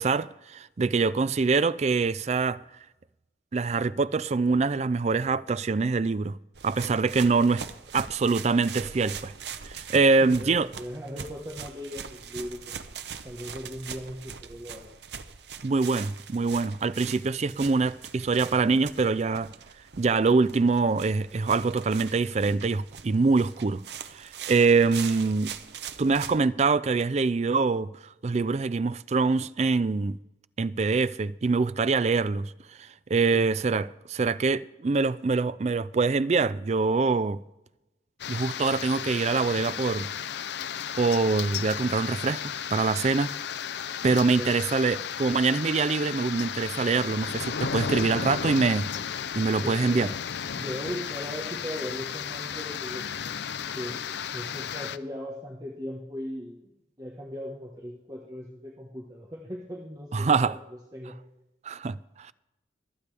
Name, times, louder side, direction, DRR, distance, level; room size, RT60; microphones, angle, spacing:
voice 1, 0.0-2.6 3.5-6.4 6.6-7.6 7.9-9.3 9.7-10.7 15.6-19.5 20.0-23.8 24.1-25.5 26.0-27.9 28.2-30.2 30.6-32.5 32.8-37.4 38.3-40.1 41.0-43.3 44.0-48.9 49.4-50.1 60.1-60.6 61.6-62.3, right 4 dB, 35° right, 0.4 m, -24 dB
sound 1, 6.5-26.4, right 7 dB, 65° right, 0.8 m, -42 dB
voice 2, 10.2-12.8 13.2-14.9 33.3-33.5 44.1-44.5 49.4-50.1 50.5-53.5 53.7-54.0 54.3-60.6 60.9-61.2, equal, 20° right, 1.3 m, -38 dB
sound 2, 38.2-55.0, left 7 dB, 70° left, 0.5 m, -34 dB
24.5 x 8.4 x 3.4 m
head